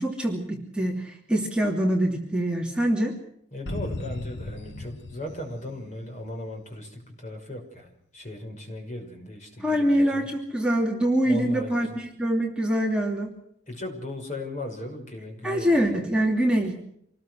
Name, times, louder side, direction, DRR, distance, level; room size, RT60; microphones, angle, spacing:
voice 1, 0.0-3.2 9.6-13.3 15.4-16.7, equal, 5° right, -1 dB, 2.9 m, -24 dB
voice 2, 3.5-10.3 11.2-12.0 13.7-16.0, left 1 dB, 40° left, 3 dB, 6.0 m, -37 dB
sound 1, 3.7-6.4, left 2 dB, 65° left, 1.1 m, -36 dB
27.0 x 20.0 x 6.4 m, 0.72 s
head